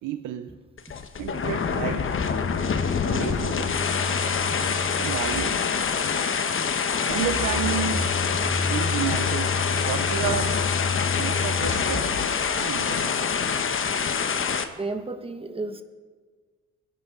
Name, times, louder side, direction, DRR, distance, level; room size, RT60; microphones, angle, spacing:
voice 1, 0.0-0.6 1.2-2.2 3.0-3.7 5.0-5.7 7.1-8.1 8.7-10.6 11.1-12.1 12.6-13.2, right 10 dB, 85° right, 8 dB, 0.7 m, -31 dB
sound 1, 0.8-14.6, left 6 dB, 45° left, 1.1 m, -26 dB
Telephone, 1.8-5.8 7.0-12.7, left 3 dB, 5° left, 4.2 m, -32 dB
voice 2, 14.8-15.8, right 3 dB, 20° right, 8 dB, 1.3 m, -32 dB
22.0 x 11.0 x 3.8 m, 1.5 s
cardioid pair, 90°, 30 cm